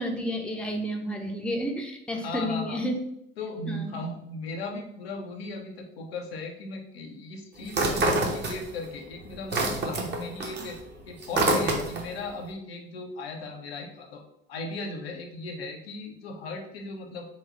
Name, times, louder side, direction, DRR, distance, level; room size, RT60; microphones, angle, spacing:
voice 1, 0.0-3.0 3.7-4.0 7.6-7.7, equal, 5° left, 2 dB, 0.7 m, -31 dB
voice 2, 2.1-2.8 3.4-10.8 11.1-14.2 14.5-17.3, left 2 dB, 85° left, 1 dB, 0.8 m, -37 dB
sound 1, 7.7-8.9 9.2-12.2, right 2 dB, 35° right, 1.0 m, -26 dB
4.2 x 2.3 x 3.9 m, 0.75 s
hypercardioid pair, 75°, 30 cm